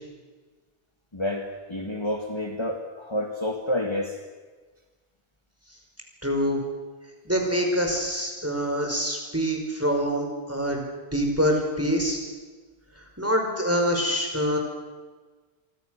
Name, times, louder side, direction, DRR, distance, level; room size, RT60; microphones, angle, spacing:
voice 1, 1.1-4.1, left 1 dB, 25° left, 3 dB, 1.9 m, -29 dB
voice 2, 6.2-6.6 7.3-10.9 11.1-12.2 13.2-14.6, equal, 10° right, 1 dB, 5.4 m, -25 dB
27.5 x 24.5 x 6.6 m, 1.4 s
omnidirectional pair, 1.1 m